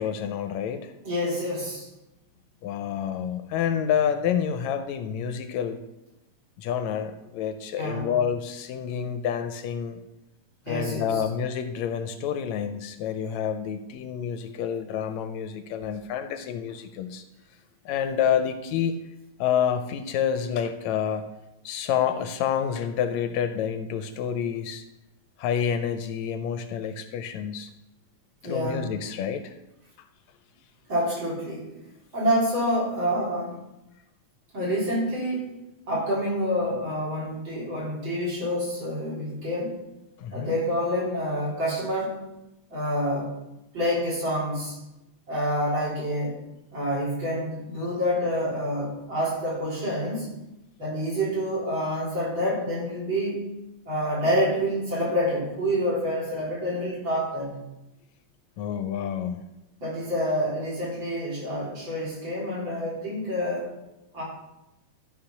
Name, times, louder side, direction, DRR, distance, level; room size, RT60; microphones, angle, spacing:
voice 1, 0.0-0.9 2.6-5.8 6.6-10.0 10.7-17.2 17.9-18.9 19.4-21.3 21.7-24.8 25.4-27.7 28.4-29.5 40.2-40.5 58.6-59.4, left 8 dB, 80° left, 8 dB, 1.9 m, -28 dB
voice 2, 1.0-1.9 7.8-8.1 10.7-11.2 28.4-28.9 30.9-31.7 32.1-33.7 34.5-35.6 35.9-39.8 40.3-42.2 42.7-43.3 43.7-44.8 45.3-46.4 46.7-50.3 50.8-53.5 53.9-57.6 59.8-63.8 64.1-64.2, equal, 40° right, -4 dB, 4.0 m, -27 dB
12.5 x 5.0 x 5.8 m, 0.93 s
omnidirectional pair, 3.3 m